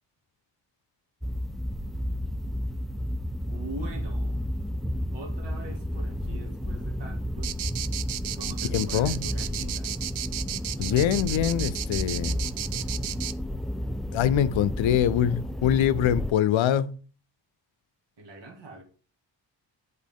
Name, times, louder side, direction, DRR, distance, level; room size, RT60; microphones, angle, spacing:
sound 1, 1.2-16.3, equal, ahead, 0.3 m, -32 dB
voice 1, 3.3-4.4 5.1-7.5 8.3-9.9 18.2-18.8, right 2 dB, 70° right, 1.9 m, -43 dB
sound 2, 7.4-13.3, right 13 dB, 90° right, 0.5 m, -33 dB
voice 2, 8.7-9.3 10.8-12.4 14.1-16.9, left 10 dB, 90° left, 0.6 m, -24 dB
7.5 x 4.0 x 3.5 m
cardioid pair, 80°, 45 cm